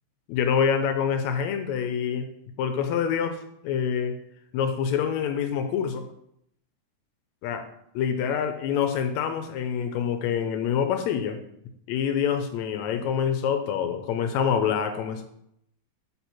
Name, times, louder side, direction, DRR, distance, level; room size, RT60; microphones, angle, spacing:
voice 1, 0.3-2.3 2.6-4.1 4.5-6.0 7.4-7.6 8.0-11.4 11.9-15.2, left 7 dB, 80° left, 7 dB, 1.8 m, -26 dB
6.8 x 4.4 x 4.3 m, 0.75 s
omnidirectional pair, 3.4 m